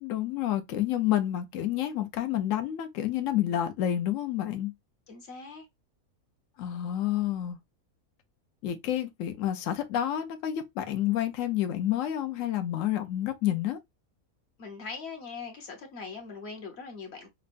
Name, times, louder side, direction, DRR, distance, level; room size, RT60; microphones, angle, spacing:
voice 1, 0.0-4.7 6.6-7.6 8.6-13.8, left 12 dB, 70° left, 1.0 m, -29 dB
voice 2, 5.1-5.7 14.6-17.3, left 4 dB, 50° left, 1.2 m, -41 dB
5.6 x 2.1 x 2.5 m
omnidirectional pair, 1.5 m